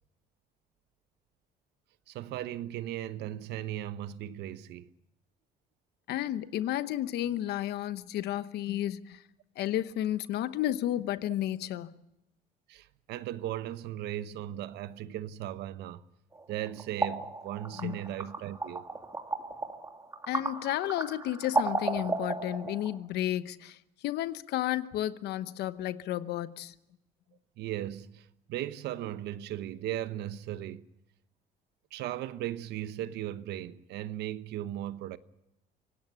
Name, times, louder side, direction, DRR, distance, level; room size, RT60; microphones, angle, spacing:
voice 1, 2.1-4.9 12.7-16.0 16.5-18.8 27.6-30.9 31.9-35.2, right 12 dB, 80° right, 1.0 m, -37 dB
voice 2, 6.1-9.2 9.6-11.9 17.7-18.0 20.3-23.8 24.0-26.7, left 13 dB, 75° left, 1.0 m, -32 dB
sound 1, 16.3-23.0, right 3 dB, 20° right, 2.6 m, -34 dB
25.5 x 17.5 x 7.0 m
cardioid pair, 110°, 17 cm